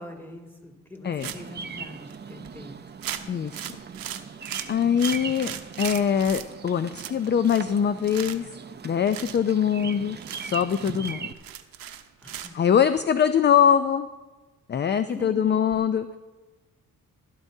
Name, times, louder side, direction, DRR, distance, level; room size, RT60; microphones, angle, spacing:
voice 1, 0.0-2.8 12.2-12.6 15.1-15.8, left 1 dB, 5° left, 0 dB, 2.1 m, -42 dB
Bird vocalization bird call bird song, 1.2-11.3, right 6 dB, 30° right, 0.6 m, -39 dB
sound 1, 1.2-1.6 2.1-2.2 2.4-2.6 3.0-6.5 6.9-7.7 8.0-8.5 9.1-9.4 9.8-9.9 10.2-12.5, right 10 dB, 75° right, 0.8 m, -37 dB
voice 2, 3.3-3.6 4.7-8.5 8.8-10.2 10.4-11.3 12.5-14.1 14.7-16.2, left 8 dB, 30° left, 11 dB, 0.4 m, -23 dB
15.5 x 12.0 x 2.7 m, 1.2 s
cardioid pair, 85°, 35 cm